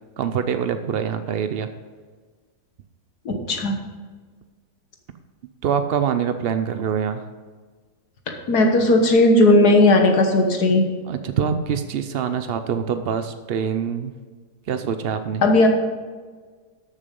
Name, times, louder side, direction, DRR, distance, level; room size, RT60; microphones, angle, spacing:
voice 1, 0.2-1.7 5.6-7.2 11.1-14.1 14.7-15.4, right 7 dB, 80° right, 9 dB, 0.5 m, -24 dB
voice 2, 3.3-3.7 8.5-10.8 15.4-15.7, left 2 dB, 75° left, 3 dB, 1.8 m, -16 dB
13.0 x 6.8 x 5.3 m, 1.5 s
omnidirectional pair, 1.7 m